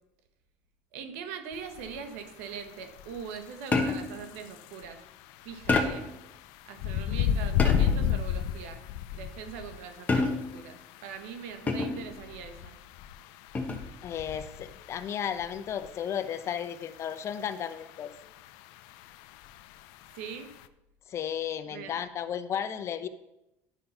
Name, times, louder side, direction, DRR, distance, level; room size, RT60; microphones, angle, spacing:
voice 1, 0.9-5.0 5.4-6.1 6.7-8.8 9.1-12.8 20.1-20.5 21.6-22.0, right 7 dB, 90° right, 8 dB, 1.3 m, -42 dB
sound 1, 1.5-20.7, left 9 dB, 80° left, 0.5 m, -35 dB
sound 2, 3.7-4.2 5.7-6.2 7.6-8.1 10.1-10.6 11.7-12.1 13.5-13.9, left 3 dB, 25° left, 1.2 m, -28 dB
voice 2, 14.0-18.1 21.1-23.1, left 9 dB, 40° left, 10 dB, 0.7 m, -34 dB
10.5 x 5.6 x 5.7 m, 0.90 s
supercardioid pair, 115°, 7 cm